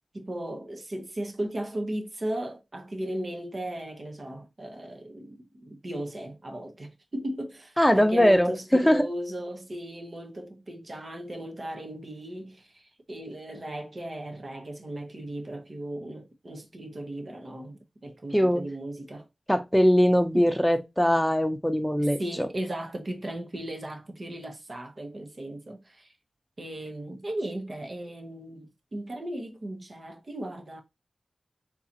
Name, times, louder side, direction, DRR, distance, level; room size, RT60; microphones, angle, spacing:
voice 1, 0.1-19.3 20.3-20.5 22.0-26.1 26.6-30.8, right 1 dB, 50° right, 1.0 m, -36 dB
voice 2, 7.8-9.0 18.3-18.7 19.5-22.2, equal, 5° left, 0.8 m, -21 dB
3.9 x 3.0 x 2.8 m
wide cardioid pair, 65°, 0 cm